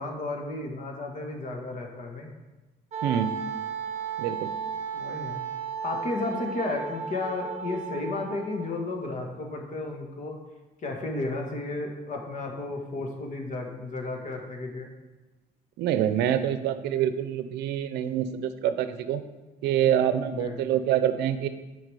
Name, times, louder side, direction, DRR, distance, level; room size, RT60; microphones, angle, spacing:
voice 1, 0.0-2.3 4.9-5.4 5.8-10.4 10.8-14.9 20.3-20.5, left 2 dB, 50° left, 2 dB, 1.6 m, -33 dB
Wind instrument woodwind instrument, 2.9-8.9, right 6 dB, 40° right, 1.1 m, -34 dB
voice 2, 3.0-3.4 4.2-4.5 15.8-19.2 19.6-21.5, right 10 dB, 90° right, 11 dB, 0.6 m, -26 dB
9.0 x 4.9 x 4.8 m, 1.1 s
cardioid pair, 110°, 17 cm